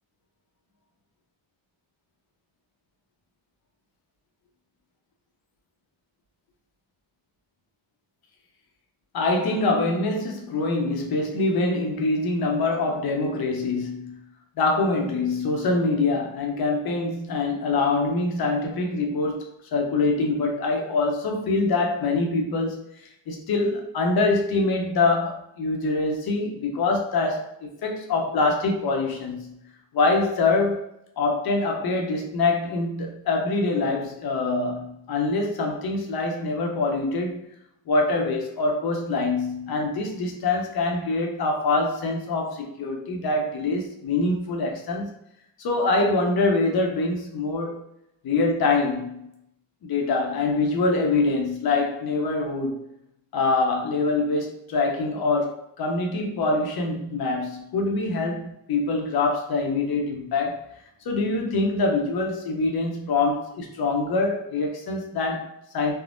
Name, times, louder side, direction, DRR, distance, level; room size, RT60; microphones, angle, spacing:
voice 1, 9.1-14.2 14.6-29.5 29.9-30.8 31.2-37.4 37.9-45.1 45.6-47.8 48.2-49.3 49.9-52.8 53.3-60.6 61.0-65.9, left 3 dB, 50° left, 1 dB, 0.7 m, -24 dB
3.4 x 2.0 x 2.5 m, 0.78 s
cardioid pair, 125°, 47 cm